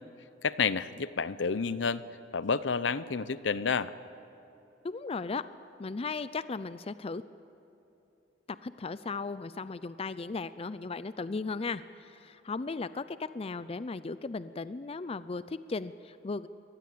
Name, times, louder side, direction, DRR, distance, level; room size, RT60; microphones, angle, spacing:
voice 1, 0.4-2.0 2.3-3.9, left 5 dB, 75° left, 16 dB, 0.7 m, -30 dB
voice 2, 4.8-5.4 5.8-7.2 8.5-16.5, left 4 dB, 30° left, 14 dB, 0.5 m, -36 dB
24.0 x 19.0 x 8.5 m, 3.0 s
head